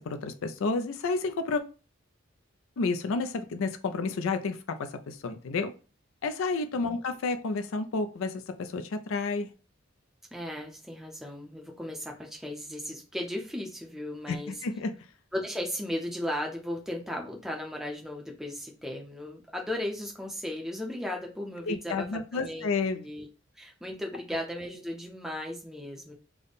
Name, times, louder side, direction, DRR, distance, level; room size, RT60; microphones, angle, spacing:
voice 1, 0.0-1.6 2.8-5.7 6.2-9.5 14.3-14.9 21.7-23.0, left 4 dB, 75° left, 9 dB, 0.4 m, -30 dB
voice 2, 10.3-14.5 15.3-23.3 23.5-26.1, left 1 dB, ahead, 0 dB, 0.5 m, -36 dB
3.5 x 2.1 x 3.9 m, 0.34 s
head